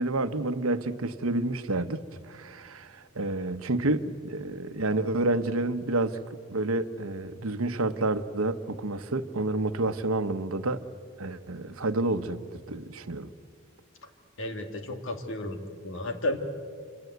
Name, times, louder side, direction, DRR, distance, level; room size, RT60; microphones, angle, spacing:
voice 1, 0.0-2.0 2.2-6.2 6.5-10.8 11.2-13.3, right 2 dB, 85° right, 1.1 m, -29 dB
voice 2, 14.4-15.6 15.8-16.4, left 1 dB, 65° left, 2.5 m, -32 dB
27.5 x 26.0 x 8.1 m
head